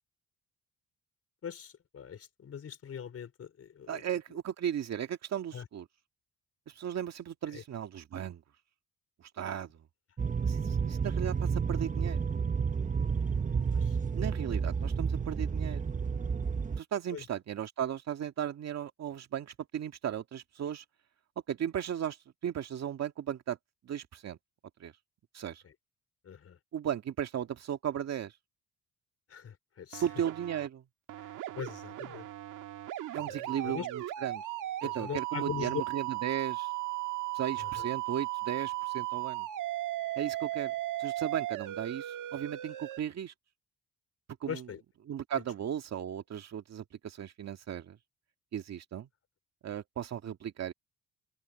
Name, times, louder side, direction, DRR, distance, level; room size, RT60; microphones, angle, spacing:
voice 1, 1.4-4.0 5.5-5.7 7.5-7.6 13.7-14.0 17.1-17.2 26.2-26.6 29.3-30.0 31.2-32.3 33.3-33.9 34.8-35.8 37.6-37.9 44.5-44.8, left 8 dB, 50° left, 4.7 m, -41 dB
voice 2, 3.9-5.9 6.7-8.4 9.2-9.8 10.4-12.2 14.1-15.9 16.8-20.8 21.5-22.2 22.4-23.6 23.8-24.4 24.8-24.9 25.3-25.6 26.7-28.3 30.0-30.8 33.1-34.4 34.8-36.7 37.3-39.5 40.2-43.3 44.4-44.7 45.1-48.0 48.5-49.1 49.6-50.7, right 9 dB, 60° right, 2.1 m, -36 dB
sound 1, 10.2-16.8, right 6 dB, 25° right, 0.8 m, -31 dB
sound 2, 29.9-30.7 31.1-43.0, right 16 dB, 85° right, 1.8 m, -36 dB
open air
cardioid pair, 110°, 30 cm